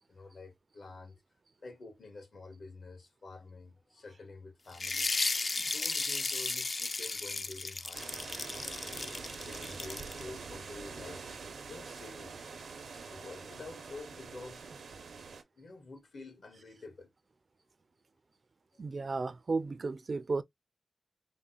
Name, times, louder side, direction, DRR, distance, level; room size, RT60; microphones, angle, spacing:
voice 1, 0.1-1.2 1.6-5.1 5.6-8.4 9.4-11.3 11.7-12.4 13.1-14.6 15.6-17.1, left 3 dB, 75° left, 1.7 m, -49 dB
sound 1, 4.7-10.2, left 3 dB, 50° left, 0.5 m, -34 dB
sound 2, 7.9-15.4, right 5 dB, 90° right, 0.7 m, -45 dB
voice 2, 18.8-20.4, right 3 dB, 55° right, 0.4 m, -33 dB
4.1 x 2.1 x 3.8 m
cardioid pair, 65°, 0 cm